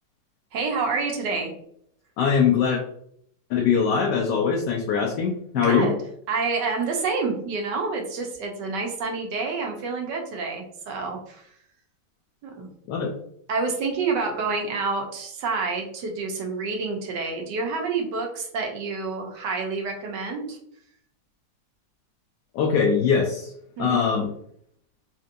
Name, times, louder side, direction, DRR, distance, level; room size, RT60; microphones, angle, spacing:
voice 1, 0.5-1.5 5.5-5.9 6.3-11.4 12.4-12.7 13.5-20.6 23.8-24.0, right 4 dB, 80° right, 2 dB, 1.4 m, -28 dB
voice 2, 2.2-2.8 3.5-5.9 12.9-13.1 22.5-23.5 23.8-24.3, left 6 dB, 80° left, 1 dB, 1.2 m, -22 dB
4.3 x 2.6 x 2.5 m, 0.68 s
omnidirectional pair, 1.9 m